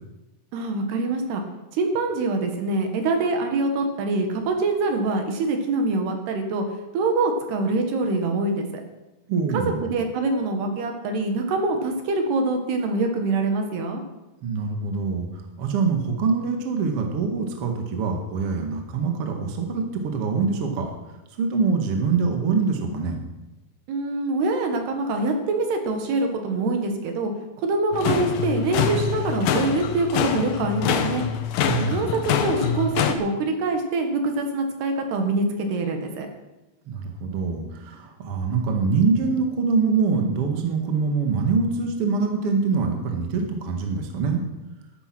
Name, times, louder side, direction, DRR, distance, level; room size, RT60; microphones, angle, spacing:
voice 1, 0.5-1.4 1.7-6.7 6.9-8.8 9.5-14.0 23.9-27.3 27.6-31.3 31.9-36.3, right 3 dB, 70° right, 4 dB, 3.6 m, -24 dB
voice 2, 9.3-9.8 14.4-20.9 21.4-23.2 31.6-32.2 36.9-44.4, right 4 dB, 45° right, 3 dB, 2.1 m, -24 dB
sound 1, 27.9-33.1, left 8 dB, 70° left, 2.2 m, -25 dB
13.0 x 12.5 x 6.2 m, 1.0 s
omnidirectional pair, 5.0 m